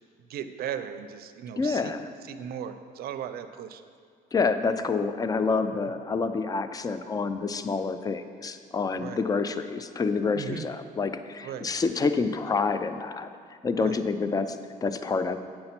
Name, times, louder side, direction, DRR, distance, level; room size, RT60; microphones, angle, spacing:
voice 1, 0.3-1.9 2.2-3.8 8.9-9.2 10.3-10.6 11.4-11.7 13.7-14.0, right 9 dB, 65° right, 10 dB, 0.6 m, -37 dB
voice 2, 1.6-2.1 4.3-13.3 13.6-15.4, left 4 dB, 20° left, 10 dB, 0.5 m, -28 dB
8.8 x 5.5 x 5.9 m, 2.1 s
cardioid pair, 110°, 17 cm